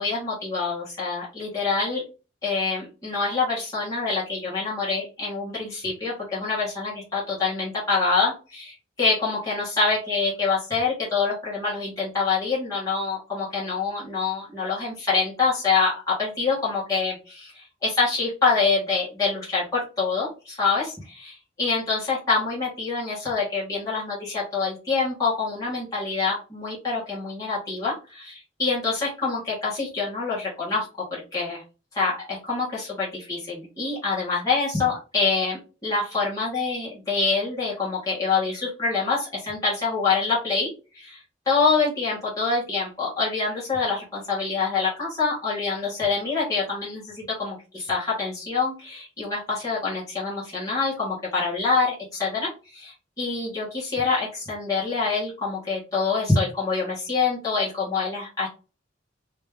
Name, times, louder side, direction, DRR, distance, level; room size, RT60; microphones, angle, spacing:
voice 1, 0.0-2.0 2.4-31.6 31.9-58.5, left 4 dB, 20° left, -8 dB, 1.6 m, -26 dB
3.2 x 3.0 x 3.4 m, 0.33 s
head